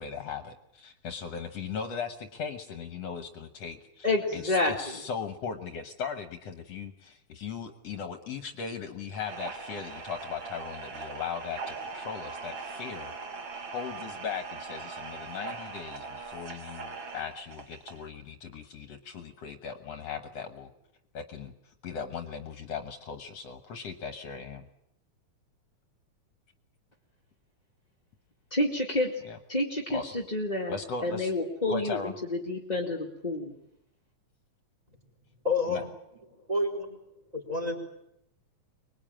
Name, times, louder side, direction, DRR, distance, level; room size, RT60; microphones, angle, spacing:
voice 1, 0.0-13.1 13.7-20.7 21.1-24.6 29.2-29.4 29.9-30.2 30.7-31.3 31.7-32.1 35.7-35.8, left 6 dB, 65° left, 7 dB, 2.2 m, -38 dB
voice 2, 4.0-4.7 28.5-29.1 29.5-33.5, left 2 dB, 15° left, -2 dB, 1.9 m, -29 dB
sound 1, 9.1-18.1, right 4 dB, 45° right, 2.5 m, -41 dB
voice 3, 35.4-35.8 36.5-36.9 37.3-37.8, left 3 dB, 10° right, 4 dB, 4.2 m, -28 dB
25.0 x 21.0 x 8.9 m, 0.79 s
omnidirectional pair, 3.4 m